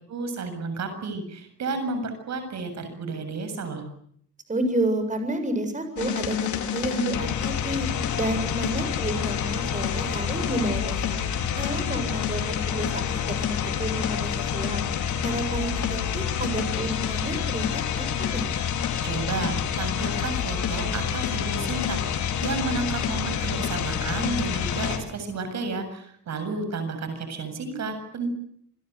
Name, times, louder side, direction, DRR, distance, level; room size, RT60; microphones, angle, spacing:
voice 1, 0.1-3.8 19.0-28.3, right 3 dB, 60° right, 8 dB, 7.5 m, -32 dB
voice 2, 4.5-7.9 8.2-11.1 11.6-14.8 15.2-18.5, right 1 dB, 25° right, 8 dB, 7.8 m, -30 dB
sound 1, 6.0-25.0, left 8 dB, 75° left, 4.8 m, -28 dB
28.5 x 21.5 x 8.2 m, 0.67 s
cardioid pair, 90°, 30 cm